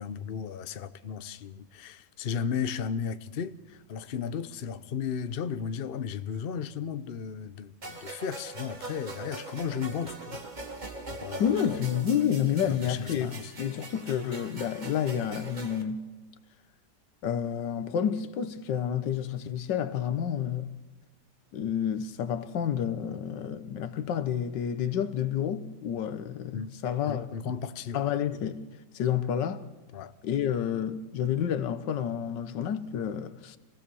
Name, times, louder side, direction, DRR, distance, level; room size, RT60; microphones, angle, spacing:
voice 1, 0.0-10.4 11.1-11.9 12.7-13.5 26.5-26.7 27.1-28.0 29.9-30.1, left 7 dB, 50° left, 0.7 m, -35 dB
sound 1, 7.8-15.8, right 2 dB, 25° right, 1.5 m, -42 dB
voice 2, 11.4-13.3 13.6-16.0 17.2-20.8 21.5-27.3 27.9-28.6 28.9-29.7 30.2-33.6, left 9 dB, 90° left, 1.6 m, -29 dB
26.0 x 17.5 x 7.0 m
omnidirectional pair, 1.9 m